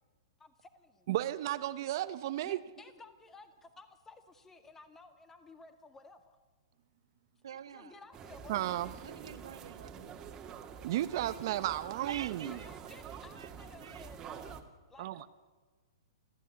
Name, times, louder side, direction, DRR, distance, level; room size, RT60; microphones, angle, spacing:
voice 1, 0.4-1.1 2.4-6.4 7.5-8.6 12.4-14.6 14.9-15.3, left 3 dB, 15° left, 9 dB, 1.9 m, -55 dB
voice 2, 1.1-2.6 8.5-8.9 10.8-12.6 15.0-15.3, right 14 dB, 55° right, 12 dB, 1.0 m, -33 dB
voice 3, 7.4-8.0 9.0-10.1 11.9-13.5 13.8-14.1, right 8 dB, 80° right, 10 dB, 1.7 m, -48 dB
sound 1, 8.1-14.6, right 7 dB, 25° right, 2.3 m, -47 dB
29.0 x 14.5 x 9.7 m, 1.4 s
hypercardioid pair, 125°, 2 cm